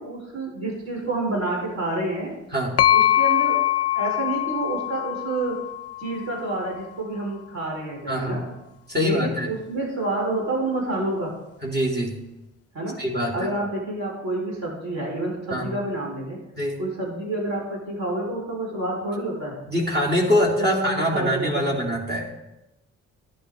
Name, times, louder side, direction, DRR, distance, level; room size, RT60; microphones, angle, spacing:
voice 1, 0.0-2.3 2.9-3.6 3.9-5.5 6.0-8.4 9.0-11.3 12.7-13.0 13.3-16.4 16.8-19.6 20.6-21.8, right 2 dB, 55° right, -2 dB, 4.7 m, -28 dB
sound 1, 2.8-6.5, left 13 dB, 50° left, 0.4 m, -23 dB
voice 2, 8.1-8.4 8.9-9.5 11.6-12.2 13.0-13.5 15.5-15.7 16.6-16.8 19.7-22.3, equal, 30° right, -2 dB, 3.3 m, -24 dB
12.0 x 10.5 x 3.8 m, 0.94 s
supercardioid pair, 60°, 32 cm